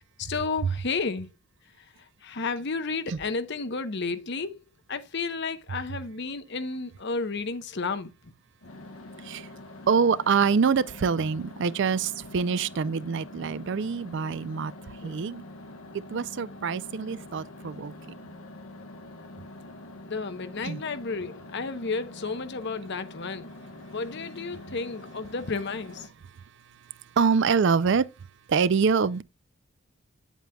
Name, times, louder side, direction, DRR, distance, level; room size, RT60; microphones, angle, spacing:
voice 1, 0.2-1.3 1.8-1.9 2.2-4.6 4.9-8.1 15.0-15.2 20.0-23.5 23.9-26.1, left 4 dB, 55° left, 0.8 m, -32 dB
sound 1, 8.6-26.1, left 2 dB, 75° left, 1.0 m, -45 dB
voice 2, 9.9-14.7 15.0-15.4 15.9-17.9 20.6-20.8 27.2-28.1 28.5-29.2, right 5 dB, 55° right, 0.4 m, -25 dB
9.0 x 8.2 x 2.3 m
head